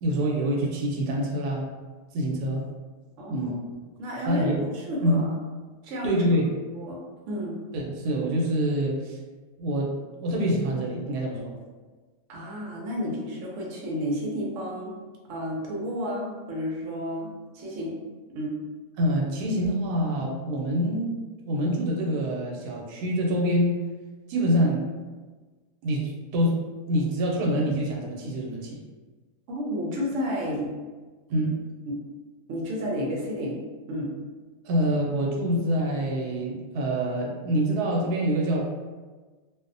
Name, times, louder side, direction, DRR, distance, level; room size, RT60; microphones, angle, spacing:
voice 1, 0.0-1.6 2.1-2.6 3.3-3.6 4.2-4.6 5.0-5.2 6.0-6.5 7.7-9.2 9.6-9.9 10.2-11.5 19.0-21.1 21.5-23.8 24.3-24.9 25.8-26.6 26.9-28.8 31.3-31.5 34.6-38.6, equal, 85° right, -2 dB, 1.1 m, -25 dB
voice 2, 3.2-3.5 4.0-5.3 5.8-6.2 6.7-7.0 7.3-7.6 12.3-14.9 15.3-17.9 18.3-18.5 29.5-30.7 31.9-32.0 32.5-33.6 33.9-34.1, equal, 65° right, -3 dB, 0.9 m, -31 dB
2.7 x 2.0 x 2.5 m, 1.3 s
omnidirectional pair, 1.6 m